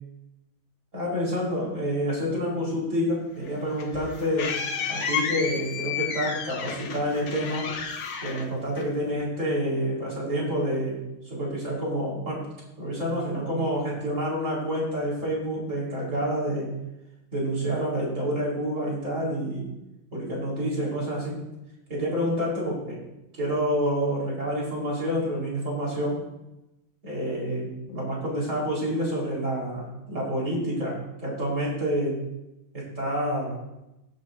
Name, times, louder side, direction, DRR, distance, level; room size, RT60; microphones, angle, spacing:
voice 1, 0.9-4.5 4.9-7.7 8.2-11.0 11.2-12.5 12.8-16.7 17.3-19.7 20.1-21.4 21.9-23.0 23.4-26.2 27.0-32.2 32.7-33.6, equal, 35° right, -5 dB, 4.8 m, -28 dB
sound 1, 3.4-9.2, left 6 dB, 75° left, 1.7 m, -32 dB
16.5 x 8.4 x 2.7 m, 0.93 s
omnidirectional pair, 2.2 m